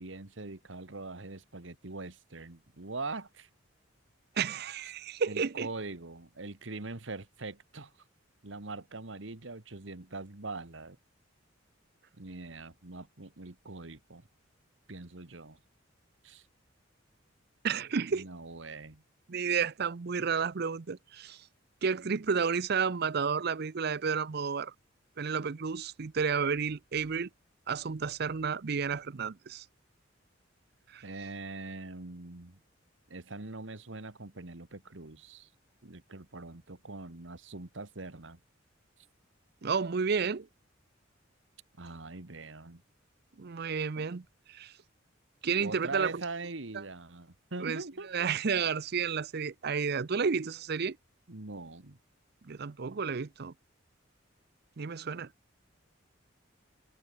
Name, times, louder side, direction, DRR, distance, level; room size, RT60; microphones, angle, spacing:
voice 1, 0.0-3.5 5.3-7.9 8.4-11.0 12.2-14.2 14.9-15.6 16.2-16.5 18.1-19.0 31.0-32.6 33.1-35.5 35.8-38.4 41.8-42.8 45.6-48.3 51.3-52.0, right 3 dB, 70° right, 1.6 m, -42 dB
voice 2, 4.4-5.7 17.6-18.3 19.3-21.5 21.8-24.7 25.2-27.3 27.7-29.7 30.9-31.0 39.6-40.5 43.4-44.7 45.4-46.2 47.6-51.0 52.4-53.5 54.8-55.3, right 6 dB, 55° right, 0.6 m, -31 dB
head